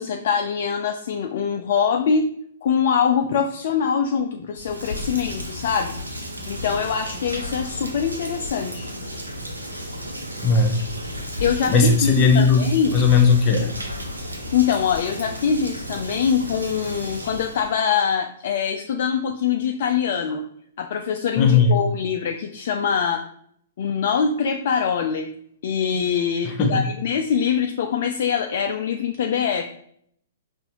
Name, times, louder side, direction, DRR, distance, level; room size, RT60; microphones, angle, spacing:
voice 1, 0.0-2.3 2.6-6.0 6.5-8.9 11.4-13.0 14.5-20.4 20.8-23.2 23.8-25.3 25.6-29.7, left 7 dB, 50° left, 4 dB, 0.3 m, -23 dB
Rain, 4.5-17.7, equal, 85° right, 0.9 m, -33 dB
voice 2, 10.4-10.8 11.7-13.7 21.3-21.8 26.4-26.8, left 4 dB, 30° left, 3 dB, 0.8 m, -17 dB
5.3 x 2.5 x 2.9 m, 0.67 s
figure-of-eight pair, 115°, 0 cm